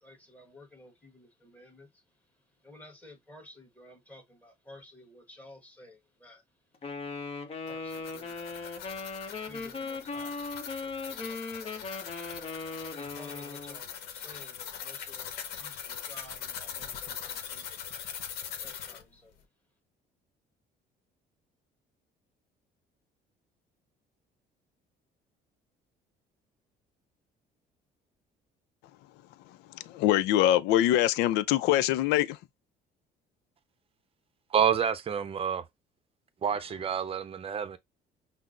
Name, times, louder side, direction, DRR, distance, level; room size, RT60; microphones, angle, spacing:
voice 1, 0.0-1.9 2.6-6.4 7.7-8.3 9.5-10.3 10.8-10.9 11.7-12.2 12.9-17.6 18.6-19.0, left 1 dB, 10° left, 1.3 m, -53 dB
Wind instrument woodwind instrument, 6.8-13.8, left 4 dB, 35° left, 0.9 m, -38 dB
sound 1, 7.7-19.0, left 8 dB, 70° left, 0.9 m, -42 dB
voice 2, 29.7-32.4, left 13 dB, 90° left, 0.4 m, -24 dB
voice 3, 34.5-35.6 36.4-37.8, right 8 dB, 35° right, 0.6 m, -28 dB
5.7 x 2.0 x 2.4 m
cardioid pair, 110°, 17 cm